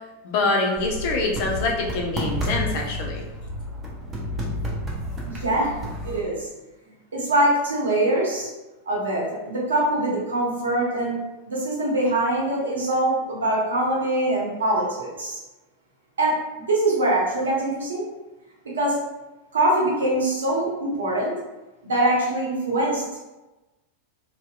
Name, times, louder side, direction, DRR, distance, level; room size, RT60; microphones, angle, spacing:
voice 1, 0.2-3.2, left 3 dB, 50° left, 0 dB, 0.5 m, -25 dB
sound 1, 0.8-6.2, equal, 20° right, 0.5 m, -31 dB
voice 2, 5.3-5.7 6.0-6.5 7.1-8.5 8.9-11.1 11.5-15.4 16.2-18.0 18.8-19.0 19.5-21.3 21.8-23.0, right 1 dB, 70° right, -5 dB, 0.8 m, -23 dB
2.7 x 2.1 x 2.2 m, 1.1 s
figure-of-eight pair, 90°, 0 cm